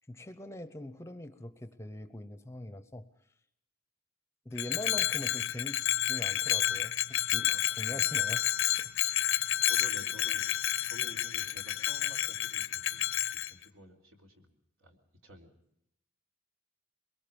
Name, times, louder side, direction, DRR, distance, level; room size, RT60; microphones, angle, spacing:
voice 1, 0.1-3.1 4.4-7.5 7.8-8.5 8.8-8.9, left 1 dB, 15° left, 11 dB, 0.7 m, -42 dB
Bell, 4.6-13.5, left 12 dB, 70° left, 0.7 m, -30 dB
voice 2, 7.4-8.1 9.4-10.5 10.8-14.5 14.8-15.5, equal, 80° right, 1 dB, 3.6 m, -52 dB
23.0 x 22.0 x 5.3 m, 0.77 s
head